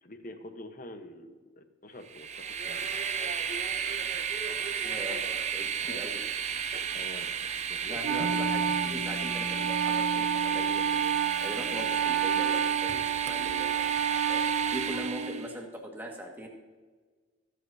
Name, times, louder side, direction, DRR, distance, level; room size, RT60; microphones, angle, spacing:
voice 1, 0.0-2.9 5.8-6.0 6.9-8.5, left 1 dB, 45° left, 7 dB, 1.1 m, -46 dB
Train, 2.0-15.5, right 7 dB, 35° right, 0.5 m, -33 dB
voice 2, 4.8-6.2 7.9-11.0 11.4-13.7 14.3-16.5, right 1 dB, 10° right, -1 dB, 1.8 m, -40 dB
Wind instrument woodwind instrument, 8.0-15.6, right 8 dB, 80° right, 0.7 m, -30 dB
sound 1, 8.2-12.0, left 2 dB, 60° right, 1.1 m, -40 dB
23.0 x 8.0 x 2.8 m, 1.4 s
head